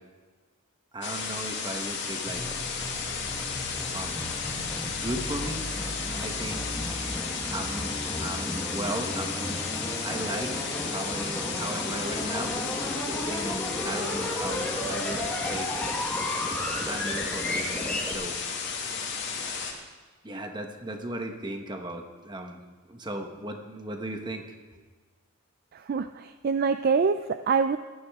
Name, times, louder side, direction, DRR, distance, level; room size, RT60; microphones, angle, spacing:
voice 1, 0.9-2.4 3.9-4.4 5.0-6.7 7.5-7.9 8.2-9.6 10.0-10.6 10.9-12.9 13.3-15.7 16.8-18.4 20.2-22.6 22.9-24.5, right 1 dB, 20° right, 4 dB, 1.2 m, -36 dB
sound 1, 1.0-19.7, left 5 dB, 55° left, 2.1 m, -33 dB
sound 2, 2.3-18.1, left 1 dB, 5° left, 1.3 m, -34 dB
voice 2, 25.7-27.8, right 5 dB, 40° right, 10 dB, 0.3 m, -25 dB
18.0 x 13.0 x 3.6 m, 1.4 s
head